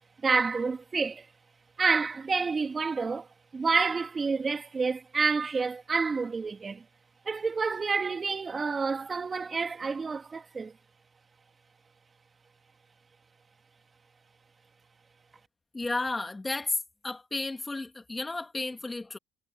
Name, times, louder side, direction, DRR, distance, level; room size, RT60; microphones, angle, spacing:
voice 1, 0.2-1.3 1.8-3.3 3.5-6.8 7.2-10.7, right 4 dB, 30° right, 3.0 m, -28 dB
voice 2, 15.7-19.2, left 2 dB, 20° left, 2.7 m, -33 dB
supercardioid pair, 80°, 0 cm